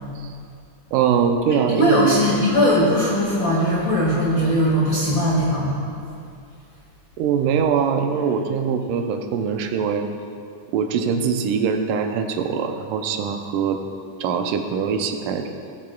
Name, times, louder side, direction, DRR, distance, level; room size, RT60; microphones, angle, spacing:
voice 1, 0.9-2.2 7.2-10.1 10.7-13.8 14.2-15.5, right 6 dB, 85° right, 5 dB, 2.1 m, -22 dB
voice 2, 1.8-5.8, equal, 50° left, -6 dB, 1.5 m, -19 dB
16.5 x 7.6 x 2.3 m, 2.4 s
omnidirectional pair, 3.7 m